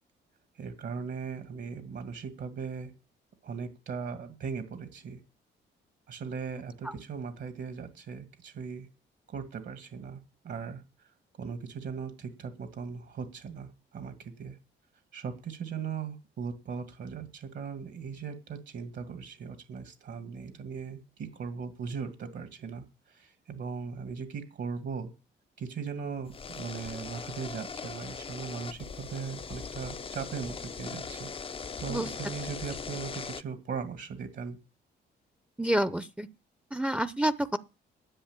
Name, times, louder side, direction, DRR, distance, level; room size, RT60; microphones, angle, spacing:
voice 1, 0.6-2.9 3.4-5.2 6.1-8.9 9.3-10.8 11.4-14.6 15.1-22.8 23.1-25.1 25.6-31.3 31.8-34.6, right 6 dB, 60° right, 2.1 m, -38 dB
sound 1, 26.2-33.4, left 5 dB, 30° left, 0.6 m, -40 dB
voice 2, 35.6-36.3 36.7-37.6, right 1 dB, 5° right, 0.7 m, -28 dB
10.5 x 7.9 x 8.8 m
cardioid pair, 90°, 20 cm